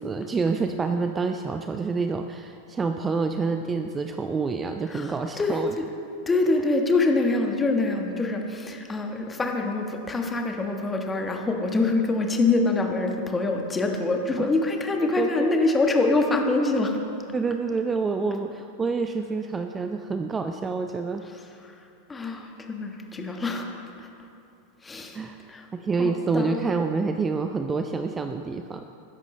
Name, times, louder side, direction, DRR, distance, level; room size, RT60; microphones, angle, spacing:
voice 1, 0.0-5.7 14.4-14.5 15.2-15.6 17.3-21.2 25.1-25.4 25.7-28.9, right 4 dB, 15° right, 7 dB, 0.5 m, -27 dB
voice 2, 4.9-5.8 6.3-17.0 21.3-21.7 22.1-23.6 24.0-24.1 24.8-25.7 26.0-26.6, left 3 dB, 15° left, 3 dB, 1.4 m, -25 dB
21.0 x 10.5 x 3.2 m, 2.7 s
figure-of-eight pair, 90°, 0 cm